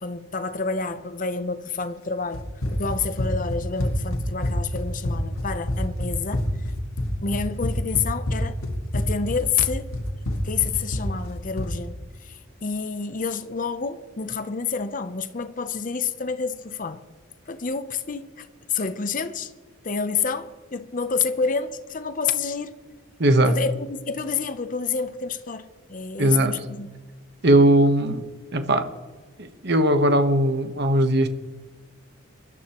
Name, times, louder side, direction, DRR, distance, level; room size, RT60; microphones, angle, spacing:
voice 1, 0.0-6.5 7.2-8.6 8.9-9.9 10.4-17.0 17.5-19.5 19.8-22.8 23.5-26.9, left 5 dB, 40° left, 0.7 m, -28 dB
Run, 2.3-11.8, left 1 dB, 75° left, 2.0 m, -27 dB
voice 2, 23.2-23.6 26.2-26.5 27.4-28.2 28.5-28.9 29.4-31.3, right 1 dB, 50° right, 1.1 m, -19 dB
23.5 x 12.5 x 3.0 m
head